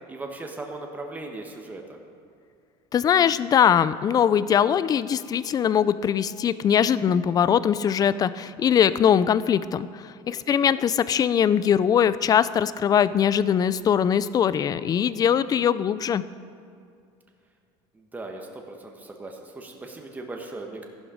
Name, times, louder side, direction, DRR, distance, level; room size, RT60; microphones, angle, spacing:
voice 1, 0.1-2.0 10.2-10.7 17.9-20.9, right 2 dB, 15° right, 2 dB, 1.3 m, -38 dB
voice 2, 2.9-16.2, left 8 dB, 30° left, 16 dB, 0.4 m, -21 dB
13.0 x 11.5 x 5.1 m, 2.4 s
supercardioid pair, 115°, 12 cm